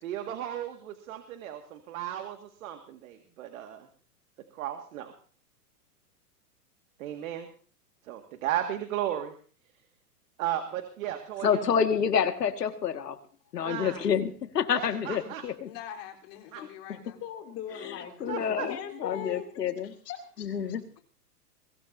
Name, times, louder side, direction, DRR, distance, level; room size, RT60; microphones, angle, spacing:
voice 1, 0.0-3.9 4.5-5.1 7.0-7.5 8.0-9.3 10.4-11.6 13.6-14.1 14.7-15.4 16.5-16.6 18.3-18.7, right 11 dB, 60° right, 6 dB, 2.1 m, -35 dB
voice 2, 11.4-13.2 13.5-14.3 14.6-15.7 17.8-19.9 20.4-20.8, left 7 dB, 85° left, 8 dB, 2.1 m, -28 dB
voice 3, 15.6-17.2 18.2-19.3, left 10 dB, 50° left, 1 dB, 4.1 m, -45 dB
voice 4, 17.2-19.5 19.8-20.5, left 9 dB, 30° left, 5 dB, 3.1 m, -39 dB
22.5 x 16.5 x 2.8 m, 0.43 s
hypercardioid pair, 125°, 47 cm